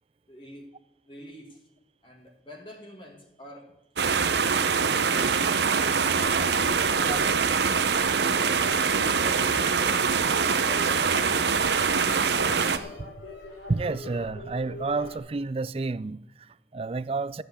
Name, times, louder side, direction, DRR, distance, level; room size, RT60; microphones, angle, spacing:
voice 1, 0.3-0.7 1.1-1.6 2.0-3.7 4.3-9.7 10.0-11.5, equal, 30° left, 1.7 m, -46 dB
sound 1, 4.0-12.8, right 5 dB, 70° right, 0.8 m, -24 dB
sound 2, 6.2-15.2, left 3 dB, 90° left, 3.7 m, -42 dB
voice 2, 12.4-13.1 13.7-17.4, right 3 dB, 30° right, 0.4 m, -31 dB
13.0 x 7.9 x 8.2 m
head